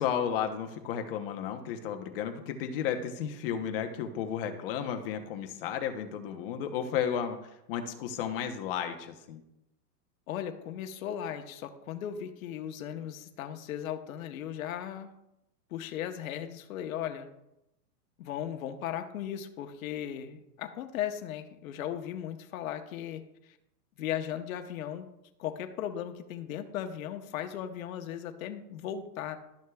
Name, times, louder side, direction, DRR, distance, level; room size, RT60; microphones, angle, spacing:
voice 1, 0.0-7.4 7.7-9.4, left 8 dB, 35° left, 6 dB, 0.9 m, -33 dB
voice 2, 10.3-15.1 15.7-17.3 18.2-23.6 24.0-25.0 25.4-29.4, left 10 dB, 55° left, 6 dB, 1.1 m, -37 dB
12.5 x 6.2 x 2.3 m, 0.85 s
supercardioid pair, 165°, 49 cm